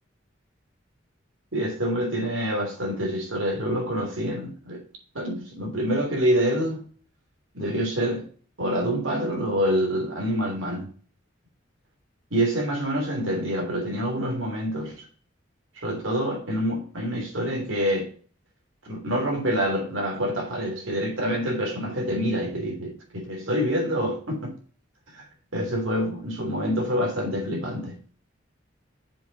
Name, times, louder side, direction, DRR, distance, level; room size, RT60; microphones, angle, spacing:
voice 1, 1.5-4.8 5.1-6.8 7.5-8.3 8.6-10.9 12.3-15.0 15.8-18.1 18.8-24.5 25.1-25.2 25.5-28.0, equal, 85° right, 3.2 m, -26 dB
7.3 x 5.6 x 5.3 m
head